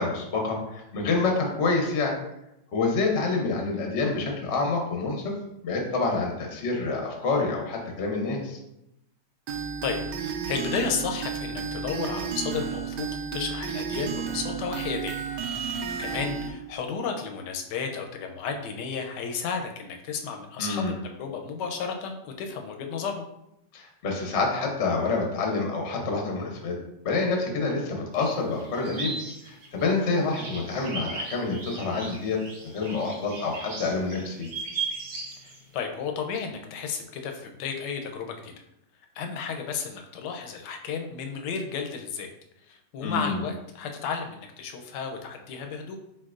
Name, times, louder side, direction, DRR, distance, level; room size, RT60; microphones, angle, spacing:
voice 1, 0.0-2.1 2.7-5.3 5.6-8.6 20.6-20.9 23.7-26.8 27.0-29.2 29.4-34.5 43.0-43.4, left 3 dB, 50° left, 1 dB, 0.8 m, -27 dB
sound 1, 9.5-16.5, right 7 dB, 75° right, 1.2 m, -32 dB
voice 2, 9.8-23.3 35.4-38.5 39.1-42.3 42.6-46.0, left 6 dB, 75° left, 4 dB, 1.2 m, -33 dB
sound 2, 28.2-35.6, right 4 dB, 60° right, 1.3 m, -37 dB
4.4 x 4.4 x 2.4 m, 0.84 s
omnidirectional pair, 1.9 m